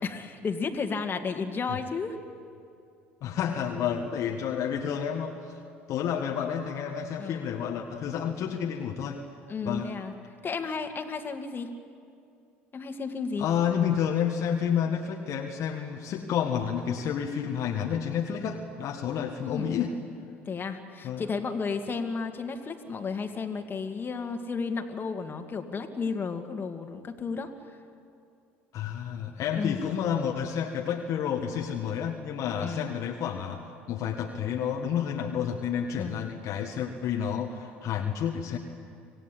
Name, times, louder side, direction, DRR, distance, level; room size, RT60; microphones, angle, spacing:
voice 1, 0.0-2.2 7.2-7.5 9.5-10.1 10.4-11.7 12.7-13.5 19.4-19.7 20.5-27.8 29.5-29.8 32.6-32.9 36.0-36.3, left 5 dB, 35° left, 5 dB, 2.3 m, -33 dB
voice 2, 3.2-5.5 5.9-9.2 9.6-9.9 13.4-19.9 21.0-21.2 28.7-33.6 33.9-38.6, left 8 dB, 55° left, 2 dB, 1.6 m, -30 dB
26.0 x 17.0 x 8.6 m, 2.5 s
hypercardioid pair, 65°, 6 cm